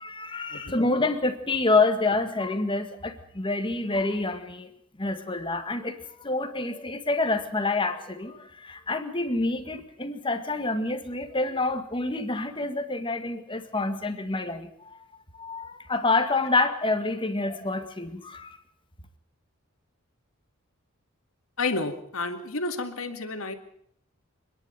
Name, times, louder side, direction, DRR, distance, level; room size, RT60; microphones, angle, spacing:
voice 1, 0.0-4.7 5.0-15.0 15.3-18.6, left 3 dB, 25° left, 8 dB, 1.8 m, -27 dB
voice 2, 21.6-23.5, left 3 dB, 75° left, 6 dB, 2.3 m, -31 dB
26.5 x 11.0 x 9.2 m, 0.69 s
head